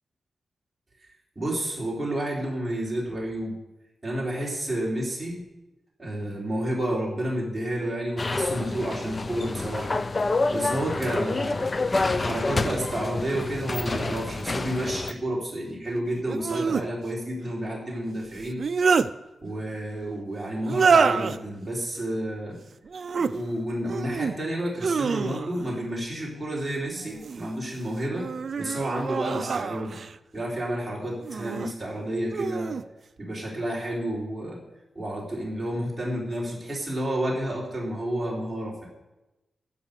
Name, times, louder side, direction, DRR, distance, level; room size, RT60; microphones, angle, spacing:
voice 1, 1.4-3.5 4.0-5.4 6.0-10.0 10.5-11.7 12.1-18.6 19.4-22.6 23.3-28.3 28.6-29.9 30.3-32.7 33.2-34.6 35.0-38.9, right 1 dB, 10° right, -5 dB, 3.9 m, -30 dB
sound 1, 8.2-15.1, left 3 dB, 30° left, 0.4 m, -28 dB
sound 2, 13.9-14.0 16.3-16.9 18.4-19.1 20.6-21.4 22.9-23.3 23.8-24.4 24.8-25.7 26.9-27.5 28.1-30.1 31.2-31.7 32.3-32.8, right 5 dB, 55° right, 0.4 m, -26 dB
15.0 x 5.8 x 6.6 m, 0.99 s
wide cardioid pair, 130°, 0 cm